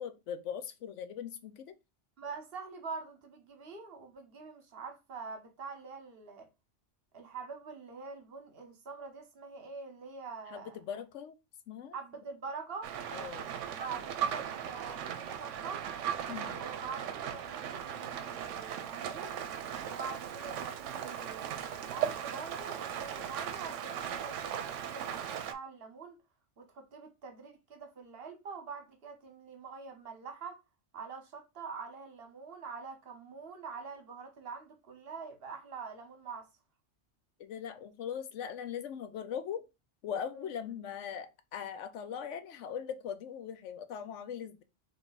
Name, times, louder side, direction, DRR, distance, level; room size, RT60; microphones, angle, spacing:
voice 1, 0.0-1.7 10.5-11.4 11.7-12.0 13.1-13.5 16.3-16.6 37.4-39.6 40.0-44.6, left 8 dB, 80° left, 1.0 m, -40 dB
voice 2, 2.2-6.5 7.1-10.8 11.9-12.9 13.5-15.9 16.5-17.0 17.3-19.4 19.8-26.2 26.6-30.6 30.9-36.5 40.4-40.5, right 5 dB, 55° right, 1.2 m, -45 dB
Rain, 12.8-25.5, right 9 dB, 80° right, 0.9 m, -38 dB
3.5 x 3.4 x 4.0 m
omnidirectional pair, 1.2 m